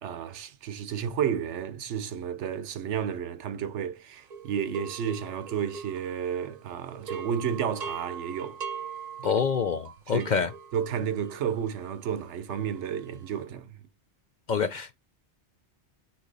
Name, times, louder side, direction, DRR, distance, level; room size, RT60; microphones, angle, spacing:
voice 1, 0.0-8.6 9.2-9.3 10.1-10.3 10.7-13.8, right 8 dB, 85° right, 1.0 m, -32 dB
sound 1, 4.3-6.6 6.9-13.3, right 6 dB, 45° right, 0.7 m, -41 dB
voice 2, 9.2-10.5 14.5-15.0, left 6 dB, 55° left, 0.5 m, -26 dB
8.2 x 2.9 x 3.9 m
omnidirectional pair, 1.2 m